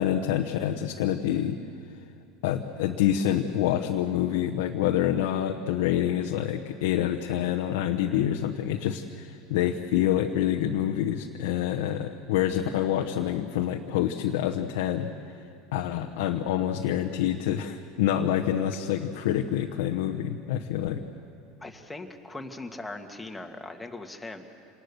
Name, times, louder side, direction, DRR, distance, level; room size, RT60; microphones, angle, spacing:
voice 1, 0.0-1.6 2.4-15.1 15.7-21.0, left 11 dB, 80° left, 3 dB, 1.0 m, -27 dB
voice 2, 21.6-24.5, left 2 dB, 10° left, 3 dB, 1.9 m, -40 dB
27.0 x 19.5 x 6.8 m, 2.5 s
supercardioid pair, 105°, 0 cm